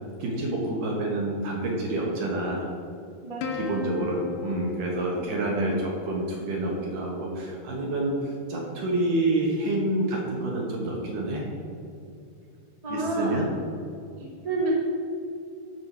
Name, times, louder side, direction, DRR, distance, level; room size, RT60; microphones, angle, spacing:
voice 1, 0.2-2.7 3.5-11.4 12.9-13.4, right 1 dB, 65° right, -2 dB, 2.5 m, -28 dB
Plucked string instrument, 3.4-6.2, left 6 dB, 70° left, 2.2 m, -37 dB
voice 2, 12.8-13.3 14.1-14.7, right 3 dB, 20° right, -4 dB, 0.9 m, -30 dB
13.5 x 4.9 x 6.0 m, 2.5 s
omnidirectional pair, 4.8 m